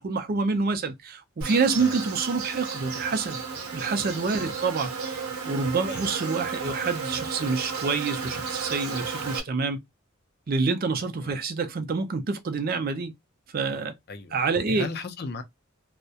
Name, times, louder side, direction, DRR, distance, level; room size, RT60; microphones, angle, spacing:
voice 1, 0.0-3.4 3.7-9.8 10.5-13.1 13.5-13.9 14.3-14.9, right 4 dB, 45° right, 0.4 m, -27 dB
Insect, 1.4-9.4, right 5 dB, 85° right, 0.7 m, -33 dB
voice 2, 14.1-15.4, left 4 dB, 45° left, 0.5 m, -37 dB
2.2 x 2.0 x 2.7 m
head